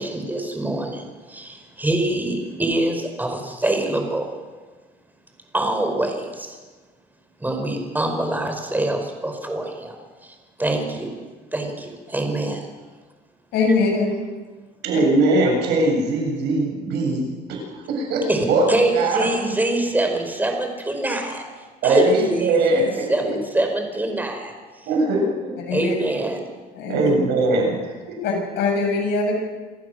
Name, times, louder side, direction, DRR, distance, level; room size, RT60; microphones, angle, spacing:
voice 1, 0.0-4.3 5.5-6.6 7.4-11.2 11.5-12.6 18.3-21.4 21.8-24.9 25.7-26.4, right 1 dB, 10° right, 4 dB, 4.9 m, -25 dB
voice 2, 13.5-14.1 25.7-25.9 26.7-27.1 28.2-29.3, left 4 dB, 80° left, 1 dB, 7.7 m, -22 dB
voice 3, 14.8-17.6 17.9-18.6 18.9-19.3 21.8-23.4 24.9-25.5 26.9-28.2, right 2 dB, 85° right, 0 dB, 7.8 m, -21 dB
27.0 x 15.0 x 6.6 m, 1.3 s
cardioid pair, 110°, 17 cm